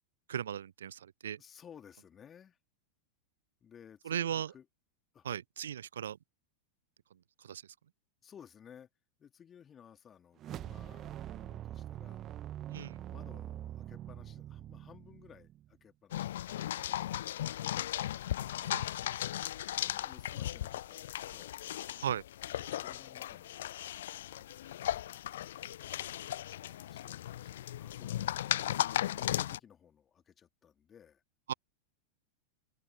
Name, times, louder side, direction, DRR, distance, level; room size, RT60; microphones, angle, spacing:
voice 1, 0.3-1.4 4.1-4.5 5.2-6.2 7.4-7.6 12.7-13.0 18.7-18.9 22.0-22.2 31.5-31.6, right 9 dB, 65° right, 0.4 m, -36 dB
voice 2, 1.4-2.6 3.6-4.7 5.1-5.3 8.2-8.9 9.2-12.3 12.9-17.1 19.7-21.7 22.5-24.4 25.1-25.8 26.5-28.2 28.9-31.2, left 8 dB, 25° left, 3.0 m, -58 dB
sound 1, 10.4-15.8, right 12 dB, 30° right, 1.4 m, -44 dB
sound 2, 16.1-29.6, left 12 dB, 60° left, 0.7 m, -36 dB
figure-of-eight pair, 90°, 0 cm